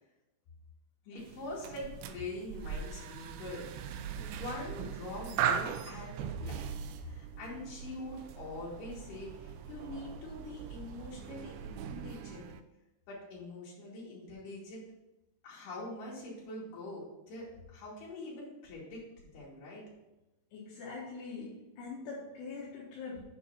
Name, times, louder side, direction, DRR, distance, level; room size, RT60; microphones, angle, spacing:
voice 1, 1.1-6.6 7.1-12.5 13.1-14.8 15.4-19.8, left 2 dB, 55° left, -5 dB, 3.9 m, -44 dB
sound 1, 1.2-12.6, right 8 dB, 80° right, 2.2 m, -39 dB
voice 2, 20.5-23.2, left 4 dB, 75° left, -5 dB, 3.4 m, -43 dB
8.1 x 4.6 x 5.7 m, 0.96 s
omnidirectional pair, 4.8 m